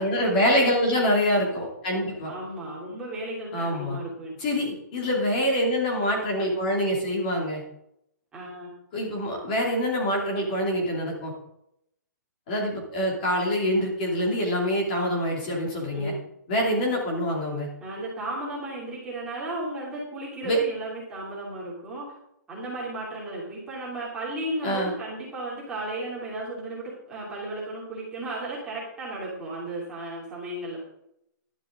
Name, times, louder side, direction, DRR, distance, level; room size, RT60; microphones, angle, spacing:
voice 1, 0.0-2.3 3.5-4.0 4.4-7.6 8.9-11.3 12.5-16.1 16.5-17.7 20.4-20.6 24.6-24.9, equal, 25° left, -2 dB, 2.9 m, -25 dB
voice 2, 2.2-4.7 8.3-8.7 9.2-9.4 15.9-16.3 17.8-22.0 22.5-30.8, right 1 dB, 5° right, -7 dB, 3.0 m, -35 dB
12.0 x 12.0 x 3.8 m, 0.78 s
hypercardioid pair, 175°, 10 cm